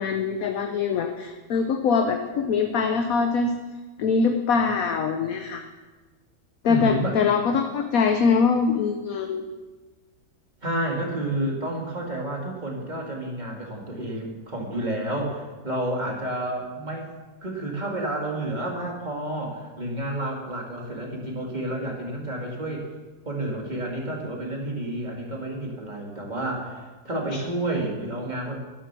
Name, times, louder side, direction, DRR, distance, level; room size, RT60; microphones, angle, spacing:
voice 1, 0.0-3.5 4.0-5.6 6.6-9.4, left 5 dB, 60° left, 5 dB, 1.0 m, -23 dB
voice 2, 6.7-7.2 10.6-17.1 17.4-22.9 23.2-28.5, right 1 dB, 20° right, -1 dB, 2.3 m, -30 dB
11.5 x 11.0 x 6.1 m, 1.3 s
omnidirectional pair, 2.1 m